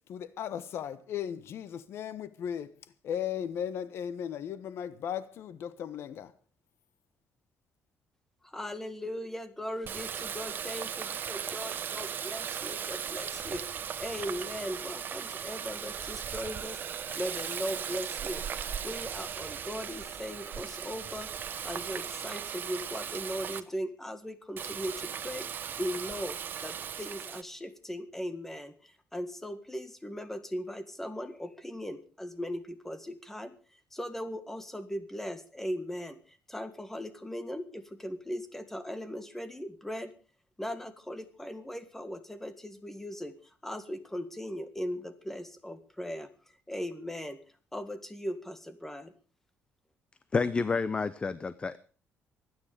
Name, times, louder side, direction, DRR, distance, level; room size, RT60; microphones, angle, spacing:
voice 1, 0.1-2.7 3.0-6.3, left 9 dB, 65° left, 1.2 m, -36 dB
voice 2, 8.4-13.6 14.0-16.8 17.2-18.4 18.8-21.3 21.6-25.5 25.8-33.5 33.9-40.1 40.6-43.3 43.6-46.3 46.7-47.4 47.7-49.1, equal, 5° left, 1.8 m, -38 dB
Water tap faucet, 9.8-23.6 24.6-27.4, right 8 dB, 45° right, 1.1 m, -37 dB
voice 3, 50.3-51.8, left 4 dB, 25° left, 0.7 m, -29 dB
24.5 x 9.7 x 5.1 m
cardioid pair, 135°, 5 cm